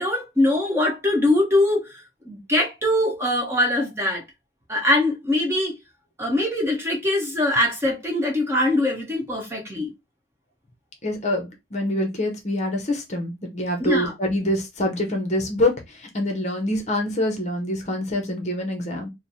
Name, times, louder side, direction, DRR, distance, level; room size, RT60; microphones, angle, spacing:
voice 1, 0.0-4.2 4.7-5.8 6.2-9.9 13.8-14.1, left 1 dB, 15° right, 1.0 m, -22 dB
voice 2, 11.0-19.1, left 1 dB, 40° left, 0.7 m, -25 dB
3.1 x 2.0 x 4.0 m
head